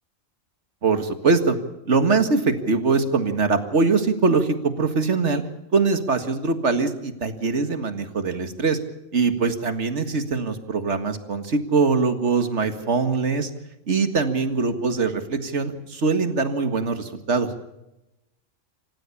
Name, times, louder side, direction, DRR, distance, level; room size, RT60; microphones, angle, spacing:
voice 1, 0.8-1.6 1.9-5.4 5.7-8.8 9.1-13.5 13.9-17.5, right 4 dB, 60° right, 8 dB, 2.1 m, -22 dB
27.0 x 15.5 x 7.0 m, 0.94 s
omnidirectional pair, 1.4 m